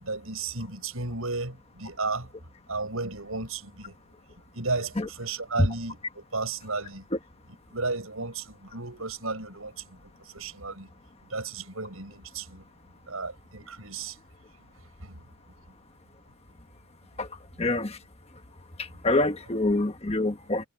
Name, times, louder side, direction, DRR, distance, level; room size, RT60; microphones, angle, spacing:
voice 1, 0.0-2.3 2.7-3.9 4.5-7.0 7.7-9.7 10.3-10.9 11.3-12.6 13.1-14.1 15.0-15.2, right 3 dB, 80° right, 7.3 m, -33 dB
voice 2, 17.6-18.0 18.8-20.6, left 2 dB, 30° left, 1.3 m, -25 dB
head